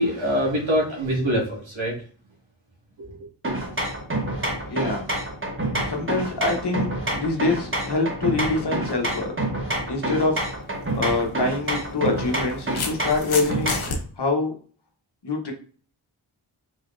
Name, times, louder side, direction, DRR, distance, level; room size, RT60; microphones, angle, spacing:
voice 1, 0.0-2.0 3.0-3.2, equal, 70° right, -3 dB, 2.0 m, -24 dB
sound 1, 3.4-14.0, right 1 dB, 25° right, 1.3 m, -28 dB
voice 2, 4.7-5.0 5.9-9.3 9.9-10.5 10.9-13.8 14.2-14.5 15.2-15.5, left 3 dB, 55° left, 2 dB, 1.1 m, -25 dB
sound 2, 10.8-11.0 12.1-14.0, left 4 dB, 80° left, 0.9 m, -30 dB
4.2 x 3.4 x 2.6 m, 0.43 s
cardioid pair, 50°, 48 cm